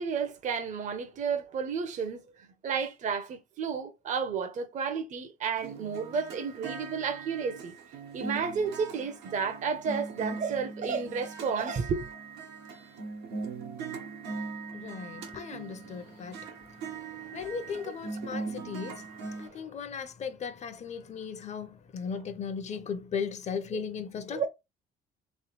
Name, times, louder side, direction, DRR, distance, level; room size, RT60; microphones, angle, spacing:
voice 1, 0.0-2.2 2.6-7.7 8.1-12.0 17.1-17.4 17.7-17.9 19.5-19.7 24.3-24.5, right 6 dB, 45° right, 0.8 m, -32 dB
sound 1, 5.6-19.5, right 4 dB, 90° right, 1.2 m, -40 dB
voice 2, 14.7-16.4 17.3-19.1 19.4-24.5, left 6 dB, 40° left, 0.8 m, -37 dB
3.3 x 3.2 x 3.0 m
cardioid pair, 110°, 17 cm